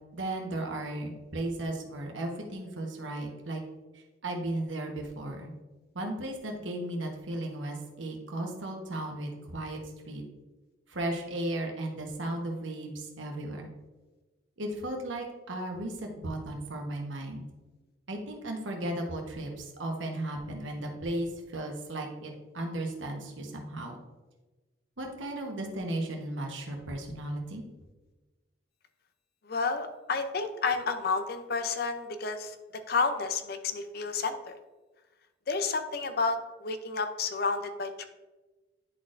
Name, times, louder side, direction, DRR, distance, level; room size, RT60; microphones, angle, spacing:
voice 1, 0.1-3.6 4.2-5.5 5.9-9.8 10.1-10.2 10.9-13.7 14.6-17.4 18.1-24.0 25.0-27.6, right 1 dB, 80° right, 2 dB, 1.1 m, -35 dB
voice 2, 29.4-32.5 32.9-34.4 35.5-38.1, left 4 dB, 50° left, 8 dB, 0.6 m, -30 dB
10.5 x 4.1 x 2.5 m, 1.2 s
head